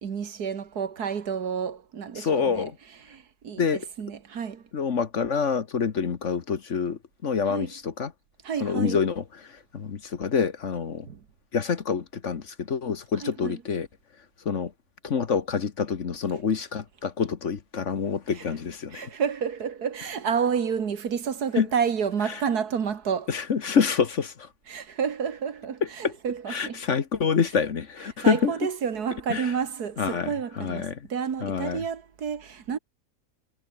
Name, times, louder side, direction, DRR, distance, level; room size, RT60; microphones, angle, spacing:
voice 1, 0.0-2.7 3.0-4.6 7.5-7.7 8.4-9.0 11.1-11.2 13.2-13.6 18.3-18.5 18.9-23.3 24.7-26.8 28.2-32.8, right 7 dB, 75° right, 2.1 m, -30 dB
voice 2, 2.2-2.7 3.6-3.8 4.7-8.1 8.6-9.2 9.7-11.1 11.5-13.9 14.4-14.7 15.0-19.1 21.6-21.7 23.3-24.3 26.0-26.1 26.5-28.5 29.3-29.5 30.0-30.9 31.4-31.8, left 6 dB, 50° left, 1.5 m, -26 dB
omnidirectional pair, 1.7 m